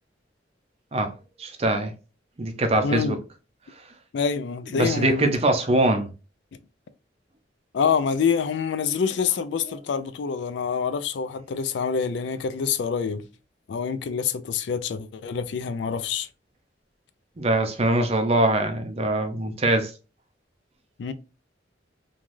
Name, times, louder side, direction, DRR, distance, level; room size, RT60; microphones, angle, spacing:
voice 1, 1.4-1.9 2.4-3.2 4.8-6.1 17.4-19.9, right 2 dB, 35° right, 0.5 m, -22 dB
voice 2, 2.8-3.2 4.1-5.4 7.7-13.2 13.7-16.3 21.0-21.1, left 6 dB, 70° left, 0.4 m, -26 dB
3.2 x 2.3 x 2.5 m
head